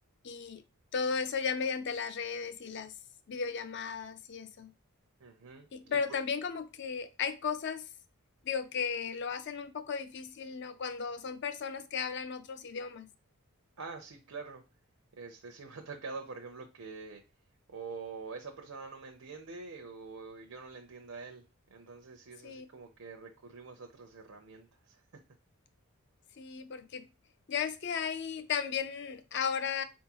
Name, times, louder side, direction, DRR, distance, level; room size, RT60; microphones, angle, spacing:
voice 1, 0.2-0.6 0.9-2.9 3.3-4.7 5.7-7.9 8.4-13.1 22.4-22.7 26.4-27.1 27.5-29.8, left 6 dB, 50° left, 0.5 m, -35 dB
voice 2, 5.2-6.2 13.8-14.6 15.2-17.2 17.7-25.0, right 4 dB, 80° right, 0.7 m, -45 dB
4.3 x 3.6 x 3.0 m
head